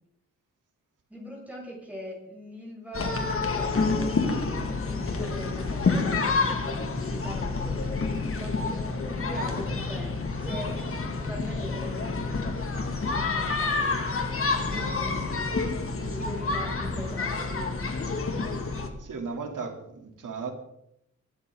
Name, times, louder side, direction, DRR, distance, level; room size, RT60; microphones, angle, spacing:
voice 1, 1.1-8.0 8.4-14.2 14.6-15.4 16.0-17.6, equal, 5° right, -5 dB, 7.5 m, -42 dB
sound 1, 2.9-18.9, left 3 dB, 45° left, 2.4 m, -28 dB
sound 2, 7.1-10.2, left 5 dB, 65° left, 1.4 m, -39 dB
voice 2, 19.0-20.5, right 5 dB, 90° right, 1 dB, 3.8 m, -35 dB
24.5 x 13.0 x 4.1 m, 0.78 s
wide cardioid pair, 135°, 30 cm